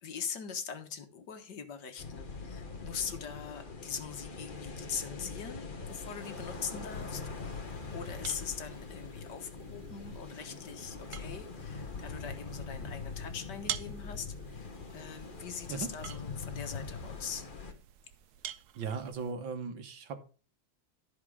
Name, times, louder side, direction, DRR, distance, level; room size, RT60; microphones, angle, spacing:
voice 1, 0.0-7.6 7.9-17.5, left 7 dB, 65° left, 1.8 m, -42 dB
sound 1, 2.0-17.7, left 4 dB, 30° left, 1.1 m, -43 dB
sound 2, 5.9-19.3, right 11 dB, 65° right, 1.1 m, -48 dB
voice 2, 18.8-20.2, right 5 dB, 85° right, 2.1 m, -37 dB
13.0 x 5.0 x 4.8 m
omnidirectional pair, 2.0 m